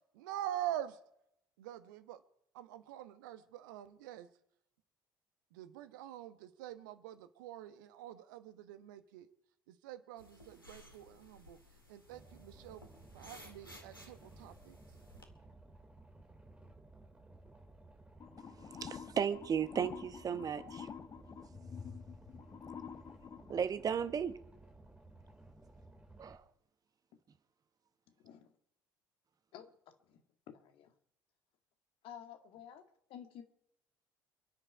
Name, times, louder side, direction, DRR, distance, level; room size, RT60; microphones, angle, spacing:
voice 1, 0.1-1.0 1.6-2.2 2.5-4.3 5.5-9.3 9.7-11.6 11.9-12.8 13.1-14.8, right 12 dB, 65° right, 1.2 m, -45 dB
sound 1, 10.2-15.2, left 1 dB, 90° left, 2.0 m, -58 dB
Boat Water vehicle, 12.1-26.3, right 2 dB, 10° right, 5.0 m, -58 dB
sound 2, 18.2-23.5, left 7 dB, 35° left, 1.2 m, -48 dB
voice 2, 18.8-20.9 23.5-24.4 26.2-26.4, right 7 dB, 35° right, 1.1 m, -35 dB
voice 3, 28.2-28.5 29.5-29.7 30.1-30.2 30.5-30.9 32.0-32.8 33.1-33.4, left 9 dB, 55° left, 2.0 m, -51 dB
28.5 x 10.0 x 4.8 m
figure-of-eight pair, 55°, 11 cm